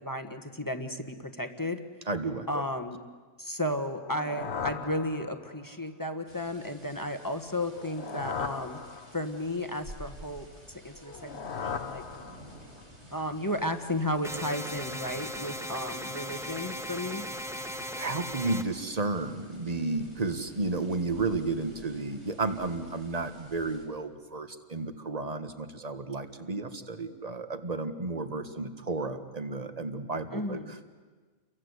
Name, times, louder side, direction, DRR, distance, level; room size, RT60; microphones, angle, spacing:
voice 1, 0.0-1.8 2.5-3.0 3.4-8.8 9.1-10.5 10.8-12.0 13.1-17.2 30.3-30.7, left 1 dB, 15° left, 7 dB, 1.4 m, -33 dB
voice 2, 2.1-2.5 17.7-30.6, right 3 dB, 30° right, 9 dB, 1.5 m, -32 dB
sound 1, 3.9-5.7 7.6-9.5 11.0-12.8, left 6 dB, 55° left, 1.4 m, -38 dB
sound 2, 6.3-23.9, equal, 60° right, 6.7 m, -52 dB
sound 3, 14.2-18.6, equal, ahead, 1.2 m, -37 dB
29.5 x 23.5 x 8.2 m, 1.4 s
omnidirectional pair, 1.4 m